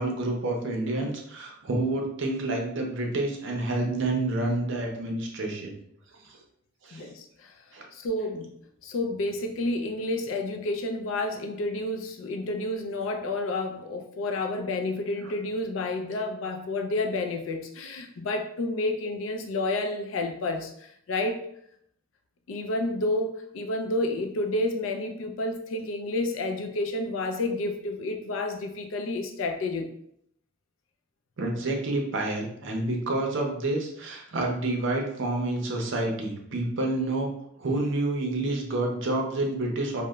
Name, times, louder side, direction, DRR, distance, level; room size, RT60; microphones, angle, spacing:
voice 1, 0.0-5.7 6.8-7.0 7.7-7.8 15.2-15.3 31.4-37.3 37.6-40.0, right 2 dB, 65° right, 1 dB, 0.5 m, -28 dB
voice 2, 6.9-7.5 7.9-8.5 8.8-20.7 21.1-21.5 22.5-29.9, left 2 dB, 75° left, 4 dB, 0.4 m, -30 dB
2.9 x 2.0 x 2.2 m, 0.71 s
head